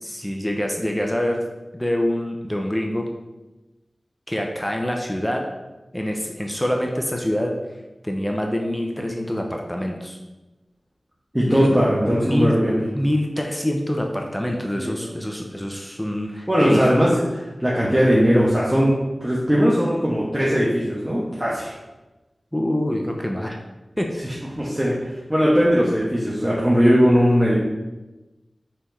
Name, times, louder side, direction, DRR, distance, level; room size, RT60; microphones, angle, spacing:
voice 1, 0.0-1.4 1.7-3.1 4.3-5.4 5.9-7.5 8.0-10.2 11.5-11.8 12.2-12.6 12.9-16.9 22.5-23.6 24.0-24.2, left 1 dB, 5° left, 1 dB, 0.7 m, -25 dB
voice 2, 11.3-12.8 14.8-15.2 16.5-18.9 19.2-21.7 24.2-27.6, equal, 15° right, -7 dB, 1.2 m, -19 dB
4.4 x 4.4 x 5.3 m, 1.1 s
wide cardioid pair, 55°, 0 cm